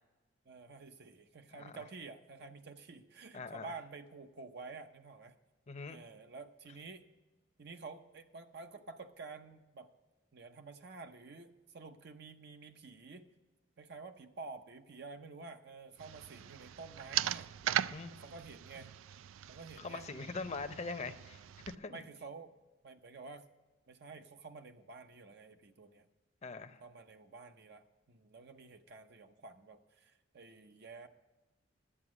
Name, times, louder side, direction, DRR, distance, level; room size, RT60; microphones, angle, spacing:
voice 1, 0.5-5.3 5.9-7.0 7.6-9.9 10.3-13.3 13.8-17.5 18.1-18.9 19.5-20.1 20.5-20.6 21.9-22.5 22.8-23.4 23.9-26.1 26.8-31.1, right 4 dB, 60° right, 6 dB, 0.7 m, -50 dB
voice 2, 1.5-1.8 3.3-3.8 5.7-6.0 17.9-18.1 19.8-21.4 21.7-22.0 26.4-26.8, left 4 dB, 35° left, 9 dB, 0.7 m, -42 dB
sound 1, 16.0-21.8, right 11 dB, 90° right, 0.3 m, -39 dB
11.0 x 8.6 x 6.1 m, 1.2 s
head